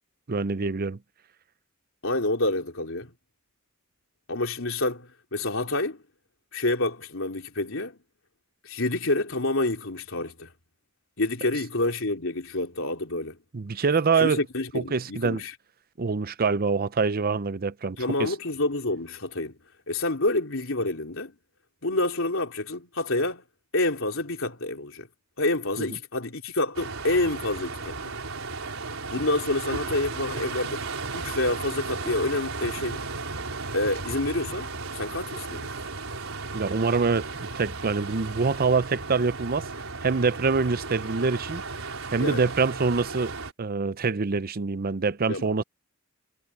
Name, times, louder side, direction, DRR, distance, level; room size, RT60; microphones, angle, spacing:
voice 1, 0.3-1.0 13.5-14.4 14.7-15.4 16.0-18.3 25.8-25.9 36.5-37.3 37.5-39.7 40.0-41.6 42.1-45.6, right 4 dB, 45° right, 0.6 m, -25 dB
voice 2, 2.0-3.1 4.3-6.0 6.5-8.0 8.6-10.5 11.2-13.4 14.2-15.5 18.0-19.5 19.9-21.3 21.8-23.4 23.7-25.1 25.4-28.0 29.1-30.9 31.1-33.1 33.7-35.7 42.2-42.4 45.3-45.6, left 2 dB, 70° left, 3.7 m, -28 dB
sound 1, 26.7-43.5, right 3 dB, 80° right, 4.3 m, -35 dB
head